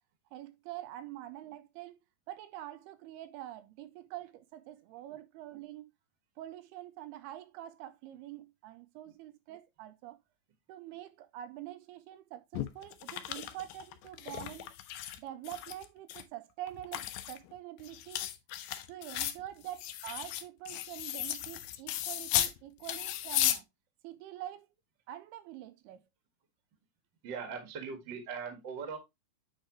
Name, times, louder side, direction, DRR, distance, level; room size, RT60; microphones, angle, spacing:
voice 1, 0.3-2.0 2.3-5.9 6.4-10.2 10.7-14.8 15.2-18.3 18.9-23.7 24.0-24.7 25.1-26.0, right 13 dB, 80° right, 2.5 m, -45 dB
sound 1, 12.5-15.2 15.4-16.2 16.7-22.6 22.8-23.6, left 13 dB, 80° left, 2.3 m, -35 dB
voice 2, 27.2-29.0, right 6 dB, 50° right, 1.4 m, -40 dB
8.7 x 4.8 x 2.9 m
omnidirectional pair, 4.7 m